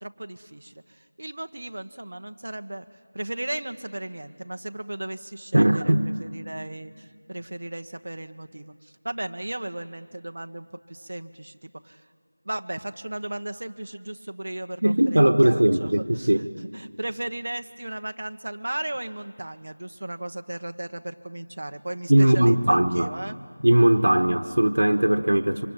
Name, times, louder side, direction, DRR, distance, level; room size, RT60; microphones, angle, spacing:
voice 1, 0.0-2.9 3.1-12.0 12.4-23.4, right 1 dB, 50° right, 8 dB, 1.2 m, -36 dB
voice 2, 5.5-6.1 14.8-16.5 22.1-23.1 23.6-25.7, right 1 dB, 85° right, 4 dB, 1.4 m, -19 dB
26.0 x 25.5 x 9.1 m, 2.1 s
figure-of-eight pair, 180°, 0 cm